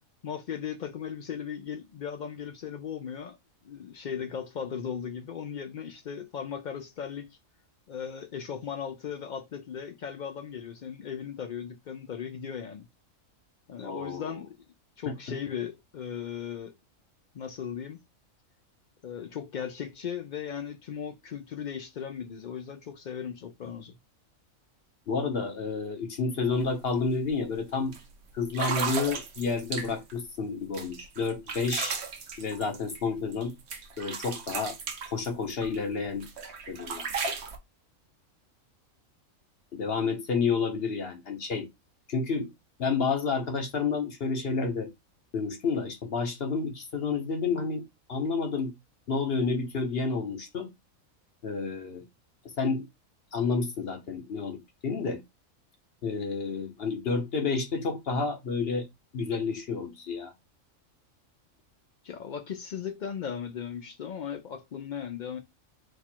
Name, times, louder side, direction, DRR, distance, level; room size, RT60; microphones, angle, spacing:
voice 1, 0.2-3.4 3.6-7.4 7.9-12.9 13.7-14.5 15.0-16.7 17.3-18.0 19.0-24.0 62.0-65.4, left 8 dB, 90° left, 0.4 m, -37 dB
voice 2, 13.8-14.4 15.1-15.2 25.1-27.9 28.3-32.0 32.4-33.5 34.0-34.8 35.1-36.3 36.7-37.1 39.7-41.7 42.1-42.5 42.8-44.9 45.3-48.7 49.1-50.7 51.4-52.0 52.6-52.8 53.3-55.2 56.0-58.9 59.1-60.3, left 4 dB, 50° left, 0.9 m, -30 dB
sound 1, 26.5-26.6 27.0-27.3 27.9-28.0 28.5-30.2 30.7-33.4 33.7-35.8 36.2-37.6, right 5 dB, 55° right, 1.0 m, -35 dB
4.4 x 2.4 x 4.3 m
omnidirectional pair, 1.4 m